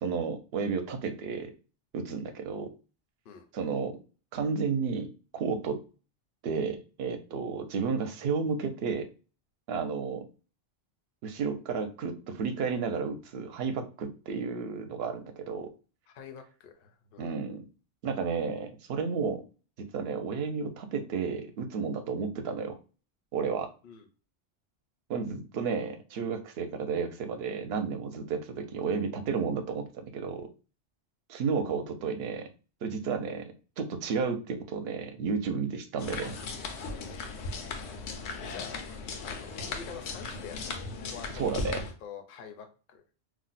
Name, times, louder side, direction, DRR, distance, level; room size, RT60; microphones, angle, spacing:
voice 1, 0.0-1.5 1.9-2.7 3.5-4.0 4.3-5.8 6.4-9.1 9.7-10.3 11.2-15.7 17.2-17.6 18.0-19.4 19.8-22.8 23.3-23.7 25.1-30.5 31.3-32.5 32.8-36.7 41.3-41.9, right 5 dB, 70° right, 8 dB, 0.8 m, -32 dB
voice 2, 16.1-17.3 23.8-24.1 36.9-37.8 38.5-38.8 39.2-41.6 42.0-43.0, left 6 dB, 60° left, 5 dB, 0.6 m, -47 dB
sound 1, 36.0-41.9, left 3 dB, 85° left, 0.9 m, -37 dB
2.5 x 2.1 x 3.9 m, 0.35 s
omnidirectional pair, 1.1 m